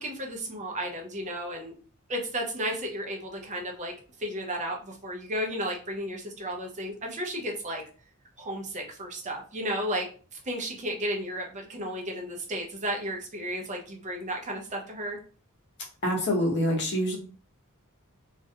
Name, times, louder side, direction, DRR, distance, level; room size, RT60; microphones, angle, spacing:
voice 1, 0.0-1.8 2.1-7.8 8.4-15.2, equal, 35° right, 1 dB, 0.6 m, -33 dB
voice 2, 16.0-17.2, equal, 50° left, -1 dB, 0.9 m, -25 dB
2.5 x 2.1 x 2.7 m, 0.40 s
head